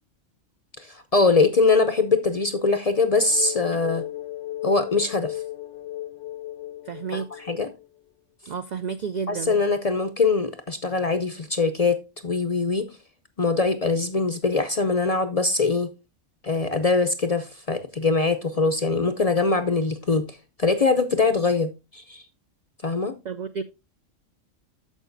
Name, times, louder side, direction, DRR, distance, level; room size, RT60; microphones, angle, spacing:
voice 1, 0.8-4.0 4.6-5.4 7.1-7.7 9.3-12.0 12.2-12.9 13.4-15.9 16.4-20.2 20.6-22.2 22.8-23.1, left 3 dB, 45° left, 9 dB, 0.5 m, -22 dB
sound 1, 3.2-7.9, left 14 dB, 70° left, 0.9 m, -35 dB
voice 2, 6.9-7.4 8.4-9.6 23.2-23.6, right 6 dB, 75° right, 10 dB, 0.4 m, -31 dB
13.5 x 5.0 x 2.6 m, 0.26 s
omnidirectional pair, 1.3 m